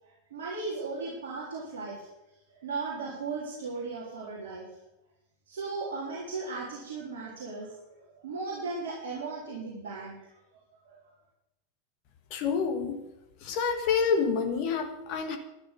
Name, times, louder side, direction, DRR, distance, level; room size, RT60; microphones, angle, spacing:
voice 1, 0.0-2.1 2.6-4.7 5.5-10.3 10.8-11.0, right 4 dB, 60° right, -5 dB, 3.8 m, -37 dB
voice 2, 12.3-13.0 13.4-15.4, left 6 dB, 45° left, 7 dB, 1.7 m, -28 dB
12.0 x 10.5 x 6.9 m, 0.91 s
figure-of-eight pair, 90°, 0 cm